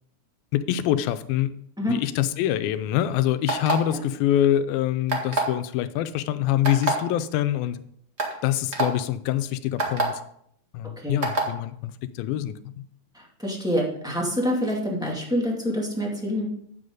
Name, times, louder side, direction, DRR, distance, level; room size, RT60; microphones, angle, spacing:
voice 1, 0.5-1.5 1.9-7.8 8.4-10.2 10.7-12.7, left 12 dB, 90° left, 12 dB, 2.4 m, -25 dB
sound 1, 3.5-3.9 5.1-5.5 6.6-6.9 7.7-7.8 8.2-8.3 8.7-8.9 9.8-10.0 11.2-11.5, right 2 dB, 40° right, 1.0 m, -24 dB
voice 2, 13.1-16.5, equal, ahead, -3 dB, 1.1 m, -26 dB
9.9 x 7.9 x 3.9 m, 0.68 s
omnidirectional pair, 4.1 m